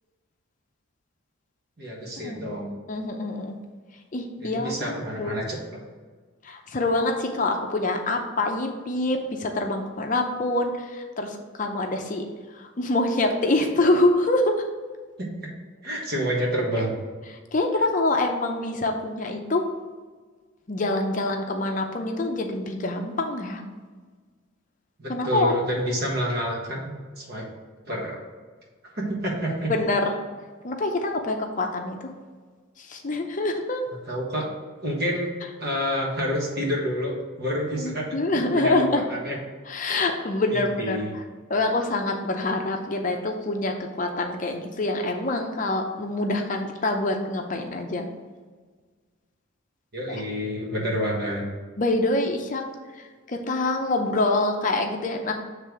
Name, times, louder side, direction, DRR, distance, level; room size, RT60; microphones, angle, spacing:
voice 1, 1.8-2.7 4.4-5.6 15.8-16.9 25.0-27.5 27.9-28.2 28.9-29.7 34.1-34.5 34.8-35.3 35.6-38.1 38.5-39.4 40.5-41.1 49.9-51.4, equal, 50° right, -2 dB, 1.5 m, -28 dB
voice 2, 2.9-3.6 4.1-5.4 6.4-12.2 12.5-14.6 17.3-19.6 20.7-23.6 25.1-25.6 29.7-30.1 30.6-32.0 32.8-33.8 37.8-39.0 39.7-41.0 41.5-48.1 51.8-52.6 53.0-55.3, left 2 dB, 35° left, 4 dB, 0.5 m, -25 dB
7.3 x 3.3 x 4.7 m, 1.5 s
head